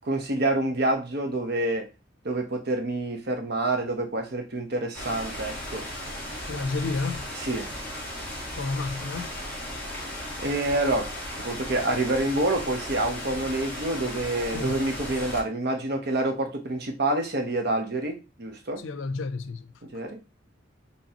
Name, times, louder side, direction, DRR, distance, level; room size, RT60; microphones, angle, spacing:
voice 1, 0.0-1.9 2.2-5.9 7.5-7.7 10.4-18.8 19.9-20.2, right 2 dB, 55° right, 0.9 m, -27 dB
sound 1, 4.9-15.4, left 1 dB, 10° left, 1.5 m, -36 dB
voice 2, 6.5-7.3 8.5-9.3 14.5-14.9 18.8-20.0, left 3 dB, 85° left, 0.5 m, -31 dB
5.5 x 3.1 x 2.9 m
head